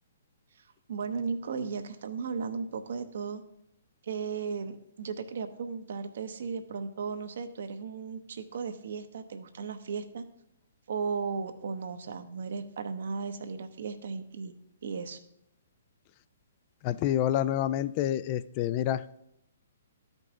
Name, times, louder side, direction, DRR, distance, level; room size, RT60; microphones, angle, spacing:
voice 1, 0.9-3.4 4.0-10.2 10.9-14.5 14.8-15.2, right 5 dB, 65° right, 8 dB, 0.8 m, -35 dB
voice 2, 16.8-19.3, left 11 dB, 35° left, 15 dB, 0.3 m, -28 dB
12.0 x 5.3 x 3.7 m, 0.80 s
hypercardioid pair, 135°, 0 cm